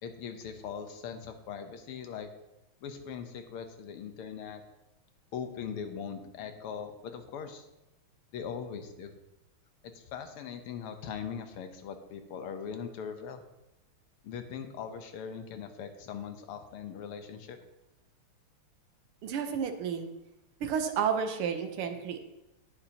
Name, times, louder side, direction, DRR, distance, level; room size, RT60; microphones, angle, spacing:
voice 1, 0.0-2.3 2.8-4.6 5.3-7.7 8.3-9.1 10.0-13.4 14.2-17.6, left 7 dB, 90° left, 7 dB, 1.9 m, -40 dB
voice 2, 19.2-20.1 20.6-22.2, right 7 dB, 85° right, 6 dB, 1.8 m, -31 dB
18.5 x 6.9 x 2.9 m, 0.95 s
omnidirectional pair, 2.4 m